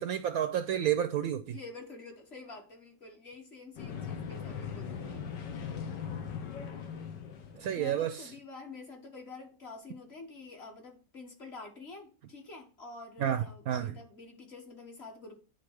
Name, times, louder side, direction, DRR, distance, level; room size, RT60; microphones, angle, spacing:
voice 1, 0.0-1.5 7.6-8.3 13.2-13.9, right 10 dB, 70° right, 0.9 m, -30 dB
voice 2, 1.5-5.3 7.7-15.4, left 3 dB, 40° left, 1.7 m, -48 dB
sound 1, 3.8-7.9, left 7 dB, 80° left, 1.6 m, -39 dB
9.8 x 3.8 x 4.7 m
omnidirectional pair, 1.9 m